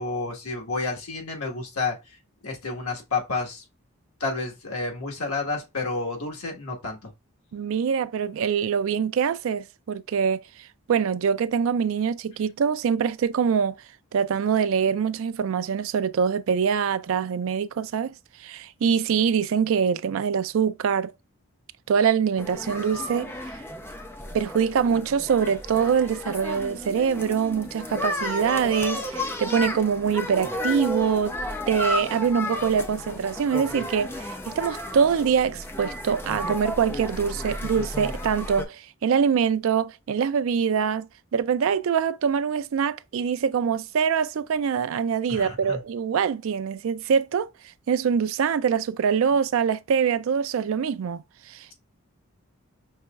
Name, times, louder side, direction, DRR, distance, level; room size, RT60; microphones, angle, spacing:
voice 1, 0.0-2.0 2.4-3.6 4.2-7.1 45.3-45.8, left 3 dB, 90° left, 1.4 m, -30 dB
voice 2, 7.5-10.4 10.9-13.8 14.1-18.1 18.4-21.1 21.9-23.3 24.3-31.3 31.7-41.1 41.3-47.5 47.9-51.7, right 7 dB, 70° right, 0.3 m, -24 dB
sound 1, 22.4-38.7, left 1 dB, 10° left, 0.5 m, -33 dB
5.6 x 3.0 x 2.3 m
head